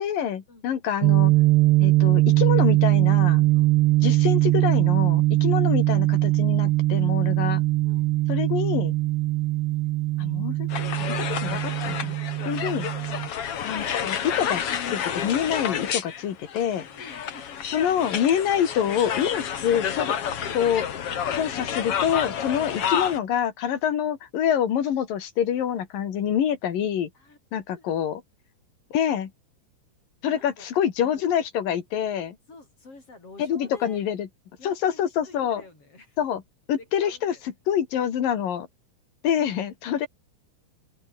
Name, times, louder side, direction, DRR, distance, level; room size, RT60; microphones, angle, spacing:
voice 1, 0.0-1.3 1.8-3.5 4.0-7.6 8.3-9.0 10.2-10.7 11.1-12.2 12.5-12.9 13.6-16.9 17.7-20.2 20.5-20.9 21.3-27.1 27.5-28.2 28.9-29.3 30.2-32.4 33.4-34.3 34.6-35.6 36.2-36.4 36.7-37.4 37.7-38.7 39.2-40.1, left 9 dB, 50° left, 3.5 m, -26 dB
sound 1, 1.0-13.3, right 18 dB, 80° right, 2.6 m, -21 dB
sound 2, 10.7-23.2, left 8 dB, 80° left, 1.3 m, -30 dB
voice 2, 16.8-17.8 23.7-23.9 27.1-27.4 27.8-28.0 30.3-30.7 32.5-34.0 34.6-36.2 36.8-37.4, left 3 dB, 30° left, 8.8 m, -49 dB
open air
omnidirectional pair, 5.7 m